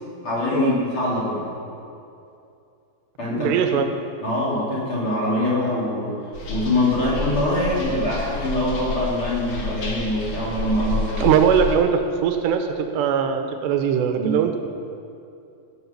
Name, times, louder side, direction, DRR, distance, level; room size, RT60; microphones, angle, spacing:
voice 1, 0.2-1.5 3.2-3.8 4.2-6.2 6.5-11.3 14.1-14.4, left 1 dB, 35° left, -7 dB, 3.0 m, -24 dB
voice 2, 3.3-3.9 11.2-14.6, right 8 dB, 85° right, 6 dB, 2.9 m, -21 dB
sound 1, 6.3-11.7, left 3 dB, 55° left, 1.7 m, -30 dB
17.5 x 7.9 x 5.8 m, 2.6 s
omnidirectional pair, 4.9 m